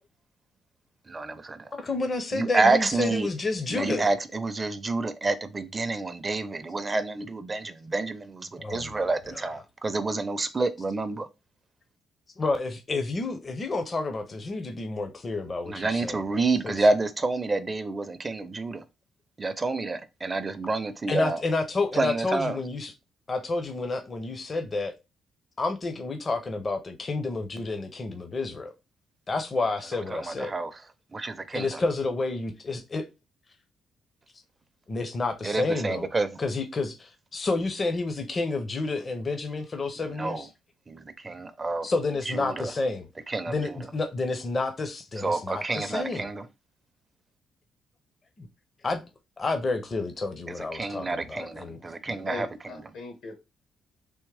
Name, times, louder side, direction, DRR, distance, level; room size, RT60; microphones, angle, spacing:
voice 1, 1.1-1.7 2.3-3.3 3.7-11.3 15.7-18.8 19.4-21.4 21.9-22.6 30.1-30.8 31.1-31.8 35.4-36.4 40.1-40.5 40.9-41.9 42.3-42.7 43.3-43.9 45.2-46.5 50.5-52.9, right 3 dB, 25° right, 0.5 m, -28 dB
voice 2, 1.7-4.1 8.6-9.1 12.4-16.2 16.6-16.8 21.1-22.9 23.3-24.9 25.6-28.7 29.3-30.5 31.5-33.0 34.9-36.1 36.4-40.5 41.8-43.1 43.5-46.3 48.4-48.5 48.8-49.0 49.4-51.8 52.1-52.5, left 3 dB, 35° left, 0.6 m, -30 dB
voice 3, 52.3-53.3, left 3 dB, 85° left, 1.6 m, -39 dB
3.5 x 2.9 x 3.3 m
cardioid pair, 90°, 0 cm